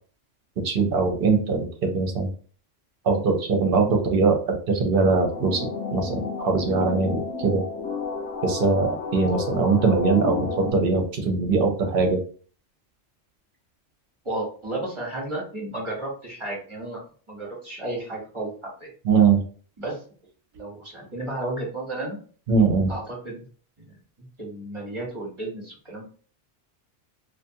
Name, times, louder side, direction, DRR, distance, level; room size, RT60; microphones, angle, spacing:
voice 1, 0.6-2.3 3.0-5.7 5.9-7.6 8.4-12.2 19.0-19.4 22.5-22.9, right 4 dB, 55° right, 3 dB, 0.8 m, -21 dB
sound 1, 5.3-10.7, left 4 dB, 70° left, 1.0 m, -31 dB
voice 2, 14.2-17.0 17.3-18.9 19.8-20.0 20.5-22.2 22.9-23.4 23.9-26.0, right 2 dB, 25° right, -3 dB, 0.9 m, -33 dB
2.5 x 2.4 x 2.7 m, 0.42 s
omnidirectional pair, 1.3 m